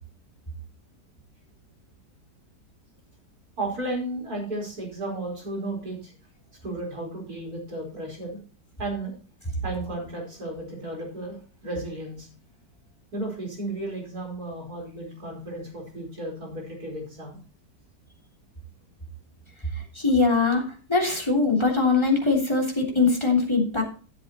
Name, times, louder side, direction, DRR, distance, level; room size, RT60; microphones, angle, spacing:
voice 1, 3.6-6.1 6.6-8.4 8.8-9.1 9.6-11.4 11.6-12.3 13.1-17.4, right 2 dB, 55° right, -1 dB, 5.2 m, -33 dB
voice 2, 19.9-20.6 20.9-23.8, left 4 dB, 15° left, 1 dB, 3.3 m, -22 dB
16.0 x 7.7 x 3.0 m, 0.38 s
omnidirectional pair, 1.9 m